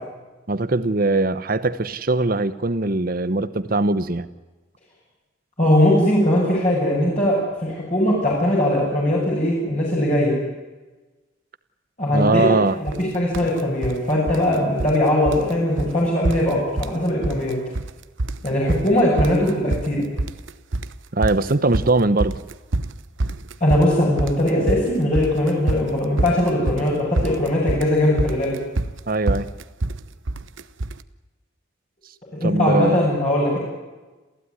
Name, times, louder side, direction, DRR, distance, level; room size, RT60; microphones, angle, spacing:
voice 1, 0.5-4.3 12.1-12.8 21.1-22.4 29.1-29.5 32.4-33.1, right 2 dB, 50° right, 13 dB, 1.0 m, -21 dB
voice 2, 5.6-10.3 12.0-12.6 12.8-17.6 18.4-20.0 23.6-28.5 32.3-33.6, left 1 dB, 35° left, -5 dB, 7.4 m, -20 dB
sound 1, 12.9-13.0 13.3-14.0 14.3-15.0 15.3-15.5 15.8-15.9 16.2-17.0 17.2-17.9 18.2-31.0, right 2 dB, 85° right, 1.0 m, -26 dB
28.0 x 16.0 x 9.7 m, 1.2 s
head